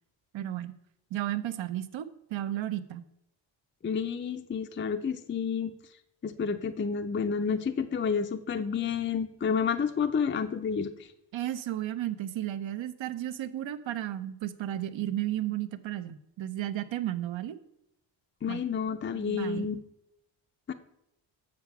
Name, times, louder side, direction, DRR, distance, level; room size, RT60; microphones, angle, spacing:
voice 1, 0.3-0.7 1.1-2.1 2.3-3.0 11.3-17.6 18.5-18.6 19.1-19.7, right 13 dB, 70° right, 12 dB, 0.7 m, -33 dB
voice 2, 3.8-5.7 6.2-10.9 18.4-19.8 20.7-20.8, left 6 dB, 25° left, 8 dB, 0.4 m, -30 dB
7.5 x 4.8 x 5.9 m, 0.82 s
cardioid pair, 95°, 49 cm